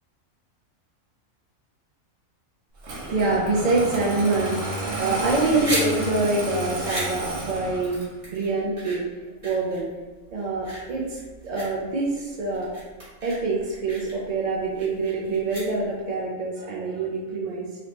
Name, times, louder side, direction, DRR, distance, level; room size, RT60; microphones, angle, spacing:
Engine starting, 2.8-8.2, right 2 dB, 75° right, 1.0 m, -31 dB
voice 1, 3.0-9.0 9.4-9.9 10.3-11.2 11.4-12.7 13.2-17.7, right 3 dB, 60° right, -4 dB, 0.4 m, -25 dB
sound 1, 5.6-16.1, right 1 dB, 25° right, 1.4 m, -36 dB
3.3 x 2.8 x 2.9 m, 1.2 s
omnidirectional pair, 1.3 m